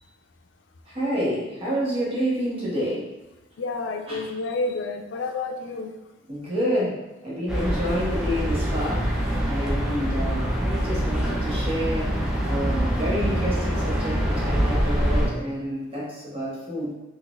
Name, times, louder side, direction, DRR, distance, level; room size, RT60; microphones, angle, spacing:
voice 1, 0.9-3.1 4.1-4.3 6.3-9.1 9.5-12.1 12.5-17.0, equal, 30° right, -6 dB, 1.0 m, -29 dB
voice 2, 3.6-5.9, left 3 dB, 90° left, 5 dB, 0.4 m, -29 dB
sound 1, 7.5-15.3, equal, 5° right, 0.6 m, -24 dB
4.0 x 2.5 x 2.4 m, 1.1 s
head